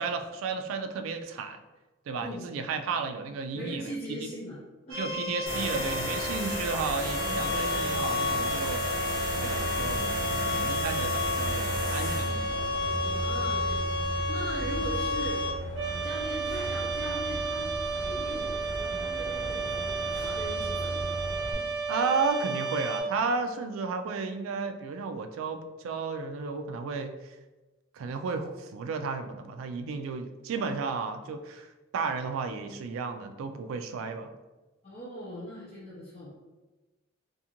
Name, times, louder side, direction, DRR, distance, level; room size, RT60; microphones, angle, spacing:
voice 1, 0.0-1.6 2.1-3.9 4.2-4.3 4.9-10.1 10.4-12.6 14.6-14.8 21.9-27.4 27.9-34.3, right 4 dB, 90° right, 8 dB, 0.3 m, -33 dB
voice 2, 3.5-4.6 4.9-5.2 13.1-15.4 15.8-21.1 21.5-21.6 34.8-36.4, equal, 35° left, -9 dB, 0.6 m, -40 dB
sound 1, 4.9-23.0, equal, 60° right, 0.7 m, -32 dB
sound 2, 5.5-21.5, equal, 75° left, 1.2 m, -35 dB
2.6 x 2.4 x 2.8 m, 1.2 s
head